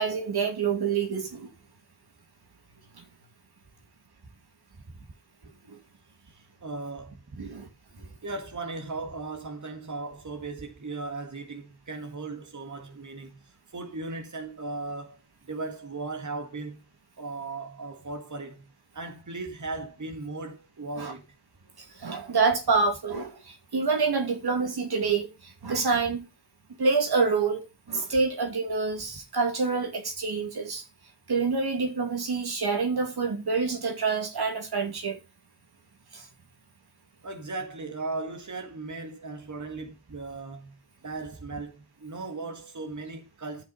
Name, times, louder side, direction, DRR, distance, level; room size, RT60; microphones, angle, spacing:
voice 1, 0.0-1.5 5.7-5.8 7.4-7.7 21.0-21.1 21.8-26.2 26.8-30.8 31.3-35.2 36.1-36.2, right 4 dB, 70° right, 2.6 m, -27 dB
voice 2, 6.3-7.2 8.2-13.3 13.7-15.2 15.5-16.8 17.2-18.6 18.9-21.3 37.2-40.7 41.0-43.6, right 3 dB, 45° right, 2.0 m, -37 dB
11.0 x 6.2 x 5.5 m
cardioid pair, 55°, 40 cm